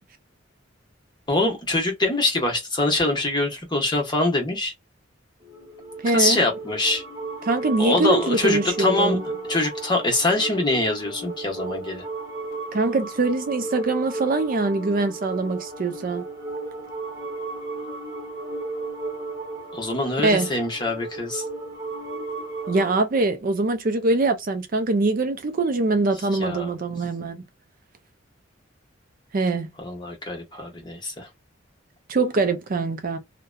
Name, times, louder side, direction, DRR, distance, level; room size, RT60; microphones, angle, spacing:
voice 1, 1.3-4.7 6.1-7.0 7.8-9.2 9.5-12.0 19.7-21.4 26.4-26.7 29.8-31.3, left 2 dB, 20° left, 1.0 m, -24 dB
sound 1, 5.4-23.0, right 2 dB, 15° right, 1.4 m, -34 dB
voice 2, 6.0-6.4 7.4-9.2 12.7-16.2 20.2-20.5 22.7-27.4 29.3-29.7 32.1-33.2, right 3 dB, 45° right, 0.4 m, -23 dB
2.8 x 2.1 x 2.3 m
head